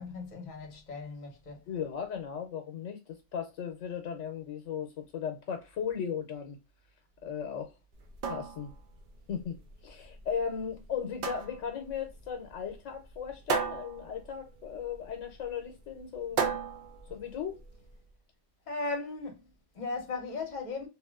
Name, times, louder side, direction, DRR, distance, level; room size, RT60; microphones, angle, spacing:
voice 1, 0.0-1.6 18.7-20.9, left 3 dB, 40° left, 0.9 m, -37 dB
voice 2, 1.7-6.6 7.2-7.7 8.3-8.7 9.3-9.6 9.8-16.5 17.1-17.6, left 7 dB, 85° left, 1.0 m, -36 dB
sound 1, 7.9-17.9, right 6 dB, 60° right, 0.5 m, -37 dB
3.0 x 2.5 x 2.2 m
omnidirectional pair, 1.3 m